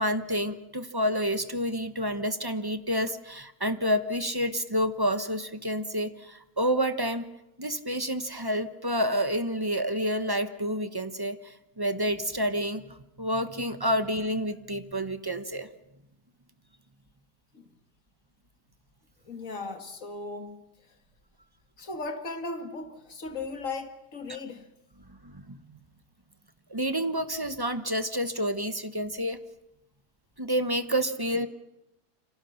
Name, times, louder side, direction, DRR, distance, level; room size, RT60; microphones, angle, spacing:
voice 1, 0.0-7.3 7.6-15.7 24.3-24.4 25.2-25.6 26.7-29.4 30.4-31.5, equal, 20° right, 0.8 m, -29 dB
voice 2, 19.3-20.6 21.8-24.7, left 3 dB, 50° left, 2.4 m, -37 dB
29.0 x 26.0 x 5.8 m
omnidirectional pair, 1.8 m